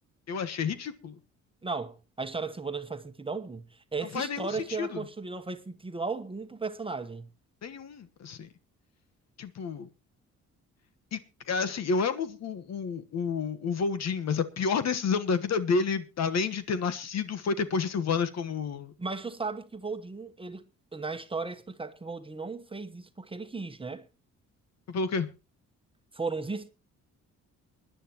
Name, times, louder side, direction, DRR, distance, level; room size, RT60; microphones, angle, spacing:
voice 1, 0.3-1.1 4.1-5.0 7.6-8.5 9.4-9.9 11.1-11.2 11.5-18.9 24.9-25.3, left 5 dB, 60° left, 1.4 m, -30 dB
voice 2, 1.6-3.6 3.9-7.3 19.0-20.7 20.9-24.1 26.1-26.7, right 4 dB, 20° right, 1.1 m, -35 dB
23.5 x 10.5 x 3.0 m
cardioid pair, 90°, 30 cm